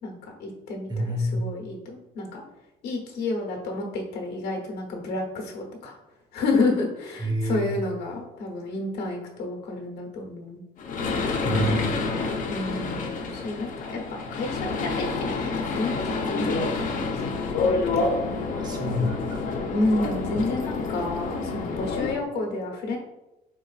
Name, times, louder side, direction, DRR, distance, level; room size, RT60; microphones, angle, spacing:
voice 1, 0.0-2.4 2.8-6.0 6.3-10.6 12.5-17.1 19.7-23.0, left 2 dB, 75° left, 0 dB, 1.1 m, -30 dB
voice 2, 0.9-1.4 7.2-7.7 11.4-11.9 18.5-19.4, equal, 25° right, 1 dB, 1.0 m, -27 dB
sound 1, 10.8-22.1, left 3 dB, 50° left, 0.7 m, -28 dB
4.5 x 4.2 x 2.4 m, 0.95 s
cardioid pair, 110°, 17 cm